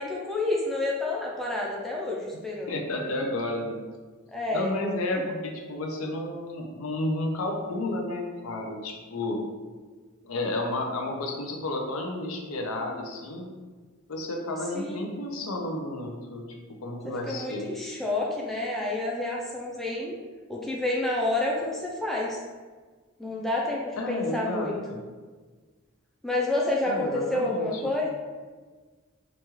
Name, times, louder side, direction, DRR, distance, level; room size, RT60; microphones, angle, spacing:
voice 1, 0.0-2.7 4.3-4.7 14.7-15.0 17.3-20.2 20.5-22.4 23.2-24.8 26.2-28.1, left 2 dB, ahead, -3 dB, 0.3 m, -29 dB
voice 2, 2.7-3.8 4.5-9.4 10.2-13.5 14.1-17.7 24.0-25.0 26.9-27.9, left 1 dB, 90° left, 2 dB, 0.5 m, -32 dB
2.9 x 2.3 x 2.9 m, 1.4 s
head